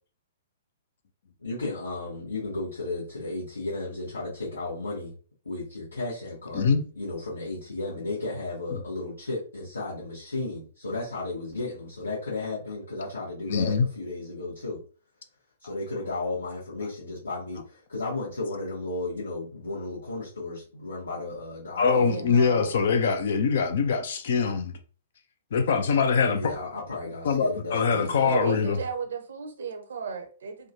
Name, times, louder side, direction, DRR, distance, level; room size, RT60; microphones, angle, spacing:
voice 1, 1.4-5.1 5.4-6.7 7.0-14.8 15.6-22.4 26.3-28.5, left 2 dB, 75° left, 1.1 m, -34 dB
voice 2, 13.5-13.9 21.8-24.8 25.5-26.5 27.2-28.8, left 5 dB, 55° left, 0.5 m, -23 dB
voice 3, 21.9-22.7 28.2-30.7, right 6 dB, 60° right, 0.7 m, -35 dB
3.5 x 2.2 x 2.7 m
figure-of-eight pair, 115°, 0 cm